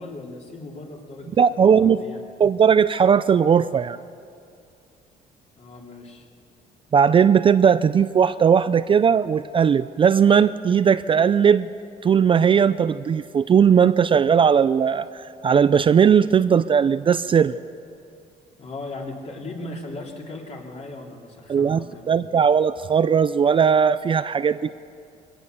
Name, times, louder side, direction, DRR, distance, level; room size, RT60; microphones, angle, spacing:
voice 1, 0.0-2.2 5.6-6.3 18.6-22.1, left 2 dB, 40° left, 0 dB, 3.4 m, -37 dB
voice 2, 1.4-2.0 2.4-4.0 6.9-11.7 12.0-17.6 21.5-24.7, right 7 dB, 30° right, 14 dB, 0.4 m, -18 dB
21.5 x 18.0 x 6.9 m, 2.5 s
cardioid pair, 110°, 17 cm